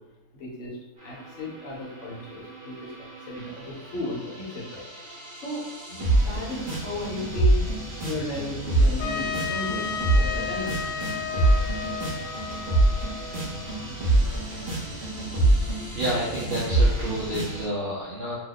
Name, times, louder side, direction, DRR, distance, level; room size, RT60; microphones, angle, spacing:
voice 1, 0.3-4.8 5.4-7.7 8.0-9.9 10.1-10.7, left 2 dB, 55° left, -2 dB, 1.0 m, -35 dB
sound 1, 1.0-17.6, right 2 dB, 45° right, 1.0 m, -26 dB
Trumpet, 9.0-13.8, left 7 dB, 80° left, 1.1 m, -33 dB
voice 2, 15.9-18.4, right 1 dB, 70° right, -6 dB, 0.6 m, -29 dB
2.8 x 2.1 x 3.9 m, 1.0 s
omnidirectional pair, 1.6 m